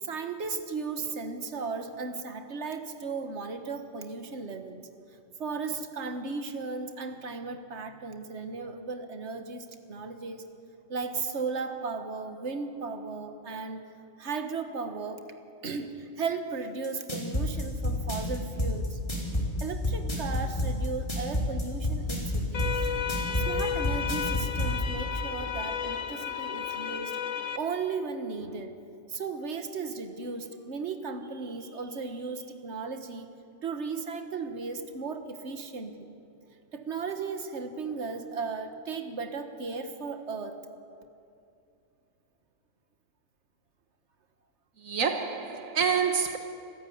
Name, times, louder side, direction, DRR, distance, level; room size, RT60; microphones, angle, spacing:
voice 1, 0.0-4.8 5.4-10.5 10.9-13.8 14.2-15.2 15.6-19.0 19.6-22.8 23.3-27.2 27.5-28.7 29.1-33.3 33.6-36.1 36.7-40.6, right 4 dB, 60° right, 1.7 m, -36 dB
sound 1, 16.8-24.7, left 1 dB, 25° left, 4.5 m, -28 dB
sound 2, 22.5-27.6, left 7 dB, 80° left, 1.6 m, -33 dB
voice 2, 44.8-46.4, right 6 dB, 80° right, 1.5 m, -27 dB
27.0 x 14.5 x 9.5 m
omnidirectional pair, 1.3 m